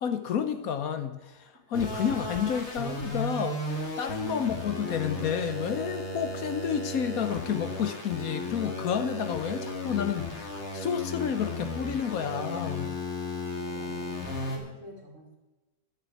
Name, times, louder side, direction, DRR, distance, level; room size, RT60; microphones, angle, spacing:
voice 1, 0.0-3.6 4.0-12.9, left 8 dB, 65° left, 9 dB, 1.2 m, -30 dB
sound 1, 1.7-14.6, left 2 dB, 45° left, 2.3 m, -35 dB
voice 2, 13.5-15.3, equal, 50° right, -4 dB, 2.6 m, -49 dB
11.5 x 6.9 x 8.3 m, 1.1 s
omnidirectional pair, 1.7 m